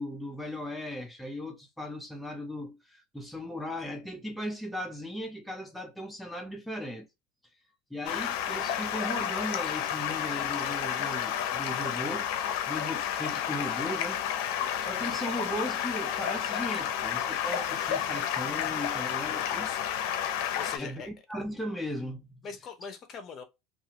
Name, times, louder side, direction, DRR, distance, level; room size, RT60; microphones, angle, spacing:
voice 1, 0.0-7.1 7.9-12.3 12.7-14.2 14.8-19.7 20.8-22.3, equal, ahead, 0.4 m, -37 dB
Stream, 8.0-20.8, left 9 dB, 70° left, 0.5 m, -31 dB
voice 2, 19.2-20.1 20.5-21.1 22.4-23.4, left 6 dB, 35° left, 0.7 m, -43 dB
2.7 x 2.3 x 2.8 m
supercardioid pair, 135°, 0 cm